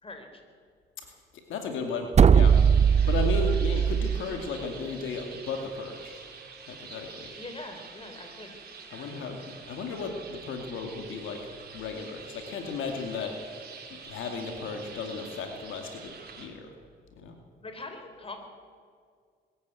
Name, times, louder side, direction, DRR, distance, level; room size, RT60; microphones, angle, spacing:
voice 1, 0.0-0.4 7.4-8.5 17.6-18.4, left 2 dB, 30° left, 5 dB, 4.1 m, -42 dB
voice 2, 1.5-2.6 3.1-6.2 6.7-7.3 8.9-11.4 11.7-13.3 14.1-16.7 17.2-17.4, left 4 dB, 80° left, 4 dB, 2.4 m, -35 dB
sound 1, 2.1-4.2, right 7 dB, 35° right, 0.5 m, -19 dB
sound 2, 2.4-16.5, right 5 dB, 50° right, 4.4 m, -45 dB
22.5 x 14.0 x 8.4 m, 2.1 s
cardioid pair, 90°, 20 cm